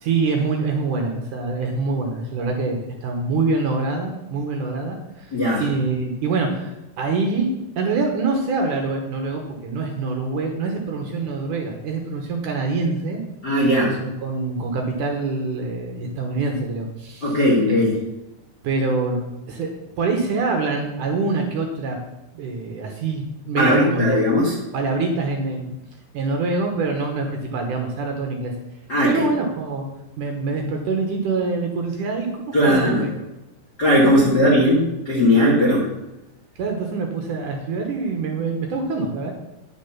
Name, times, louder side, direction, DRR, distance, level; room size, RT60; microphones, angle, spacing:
voice 1, 0.0-7.5 7.8-13.2 13.6-17.4 17.7-17.9 18.6-19.7 20.0-22.0 22.3-24.4 24.7-25.7 26.1-28.5 29.0-29.9 30.2-33.1 34.0-34.3 36.6-39.3, right 3 dB, 65° right, 2 dB, 2.3 m, -25 dB
voice 2, 5.3-5.6 13.4-13.9 17.2-17.9 23.6-24.5 28.9-29.2 32.5-33.0 33.8-35.9, left 1 dB, 40° left, -4 dB, 1.5 m, -18 dB
9.8 x 7.2 x 5.9 m, 0.96 s
omnidirectional pair, 4.6 m